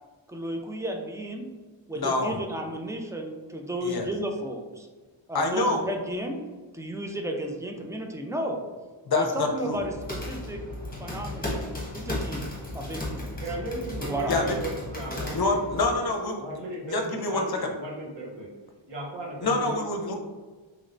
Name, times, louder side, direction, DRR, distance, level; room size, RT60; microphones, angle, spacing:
voice 1, 0.3-1.5 1.9-4.9 5.3-6.4 6.7-8.6 9.1-10.6 11.0-11.5 11.9-13.3 14.0-14.4, right 1 dB, 5° right, 2 dB, 0.3 m, -33 dB
voice 2, 2.0-2.3 3.8-4.0 5.3-5.8 9.1-9.8 14.3-14.6 15.3-16.4 16.9-17.7 19.4-20.1, left 2 dB, 50° left, 3 dB, 0.6 m, -26 dB
sound 1, 9.7-16.0, left 1 dB, 20° left, 1.0 m, -35 dB
voice 3, 13.4-15.6 16.4-18.5 18.9-19.8, right 1 dB, 60° right, -5 dB, 0.9 m, -36 dB
3.1 x 3.0 x 2.5 m, 1.4 s
wide cardioid pair, 80°, 48 cm